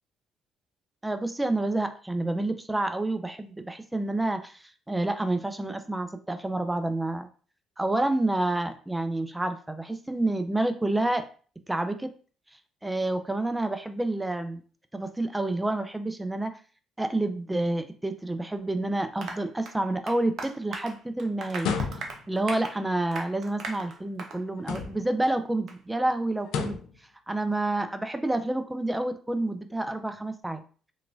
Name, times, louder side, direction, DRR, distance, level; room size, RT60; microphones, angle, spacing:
voice 1, 1.0-7.3 7.8-11.2 11.7-12.1 12.8-14.6 14.9-16.5 17.0-21.7 22.3-26.8 27.3-30.6, right 2 dB, 10° right, 8 dB, 0.4 m, -29 dB
Applause, 19.2-24.4 24.7-24.9 25.2-25.3 25.7-25.8, right 4 dB, 60° right, 0.5 m, -40 dB
sound 1, 21.5-22.4 24.6-25.2 26.4-27.0, left 6 dB, 70° left, 0.3 m, -31 dB
2.9 x 2.3 x 2.6 m, 0.40 s
hypercardioid pair, 50°, 0 cm